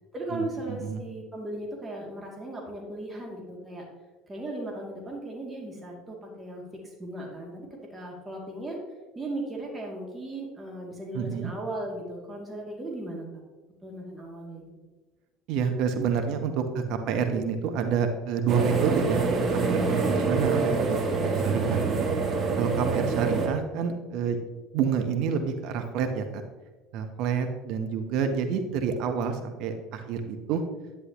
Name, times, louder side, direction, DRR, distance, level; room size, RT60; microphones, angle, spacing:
voice 1, 0.1-3.8 4.3-8.8 9.1-13.3 13.8-14.7, right 1 dB, 20° right, -2 dB, 2.4 m, -37 dB
voice 2, 0.7-1.0 11.1-11.5 15.5-19.3 19.5-22.0 22.6-24.4 24.7-26.4 26.9-30.6, right 6 dB, 60° right, 6 dB, 0.9 m, -28 dB
sound 1, 18.5-23.5, right 4 dB, 40° right, 2.0 m, -25 dB
10.5 x 9.4 x 2.9 m, 1.3 s
hypercardioid pair, 65°, 0 cm